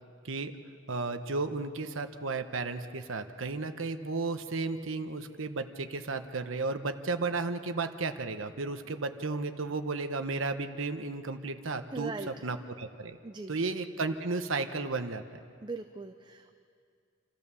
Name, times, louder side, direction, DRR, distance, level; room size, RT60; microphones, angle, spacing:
voice 1, 0.9-13.2 13.5-15.2, right 3 dB, 75° right, 8 dB, 1.0 m, -33 dB
voice 2, 11.9-12.3 13.2-13.5 15.6-16.5, right 3 dB, 20° right, 7 dB, 0.5 m, -39 dB
28.0 x 13.5 x 7.0 m, 2.3 s
head